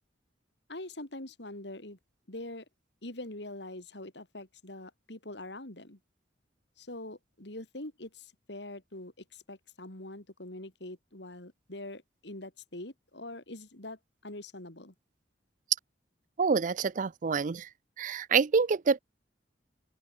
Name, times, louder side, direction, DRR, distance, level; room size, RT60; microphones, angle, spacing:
voice 1, 0.7-2.0 2.3-2.7 3.0-6.0 6.8-14.9, left 1 dB, 65° left, 3.6 m, -44 dB
voice 2, 16.4-17.7 18.0-19.0, right 5 dB, 45° right, 0.5 m, -27 dB
open air
head